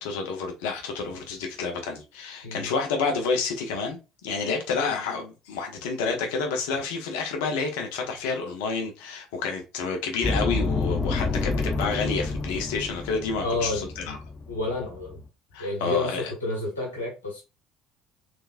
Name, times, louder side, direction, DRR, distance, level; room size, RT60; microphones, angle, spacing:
voice 1, 0.0-14.2 15.5-16.2, left 4 dB, 65° left, 0.9 m, -29 dB
sound 1, 10.2-15.3, left 3 dB, 30° left, 0.5 m, -29 dB
voice 2, 13.4-14.2 14.5-15.2 15.6-17.4, left 2 dB, 85° left, 1.4 m, -30 dB
3.4 x 2.9 x 2.5 m
figure-of-eight pair, 60°, 0 cm